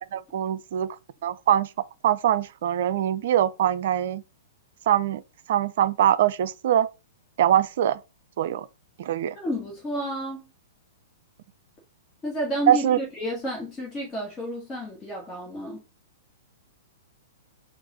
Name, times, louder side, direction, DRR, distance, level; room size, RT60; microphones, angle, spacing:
voice 1, 0.1-1.0 1.2-1.7 2.0-4.2 4.9-5.2 5.5-6.9 7.4-8.0 8.4-8.7 9.0-9.4 12.7-13.0, right 11 dB, 55° right, 0.4 m, -23 dB
voice 2, 9.3-10.5 12.2-15.8, equal, 20° left, 1.6 m, -31 dB
4.7 x 2.5 x 3.8 m
figure-of-eight pair, 110°, 0 cm